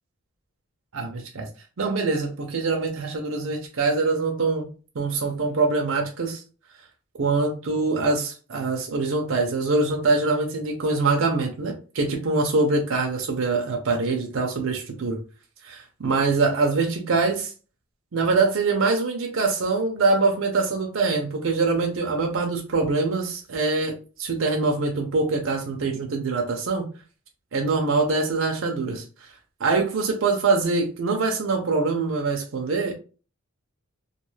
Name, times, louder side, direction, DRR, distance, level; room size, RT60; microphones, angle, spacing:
voice 1, 0.9-1.5 1.8-4.7 5.0-6.4 7.2-15.2 15.6-17.5 18.1-26.9 27.5-29.0 29.6-32.9, right 3 dB, 65° right, 1 dB, 0.5 m, -24 dB
2.3 x 2.3 x 3.1 m, 0.36 s
head